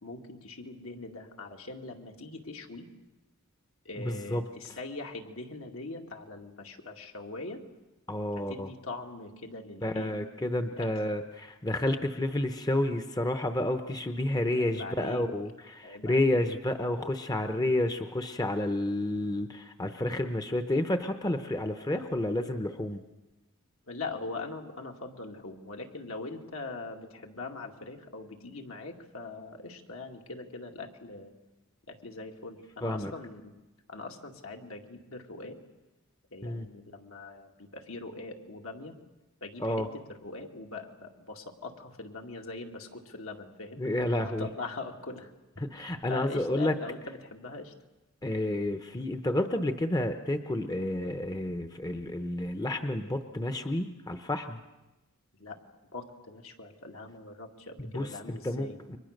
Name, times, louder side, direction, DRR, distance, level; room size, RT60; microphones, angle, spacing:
voice 1, 0.0-2.9 3.8-7.6 8.4-10.1 10.7-10.9 14.6-15.2 15.8-16.4 23.9-31.3 31.9-33.5 33.9-35.6 36.3-38.9 39.4-43.8 44.2-45.3 45.7-47.7 55.4-55.6 55.9-58.8, left 3 dB, 70° left, 2 dB, 2.4 m, -42 dB
voice 2, 4.0-4.4 8.1-8.7 9.8-23.0 32.8-33.1 36.4-36.7 39.6-39.9 43.8-44.5 45.7-46.7 48.2-54.6 57.8-59.0, left 1 dB, 20° left, 8 dB, 0.9 m, -30 dB
30.0 x 23.5 x 6.6 m, 1.1 s
head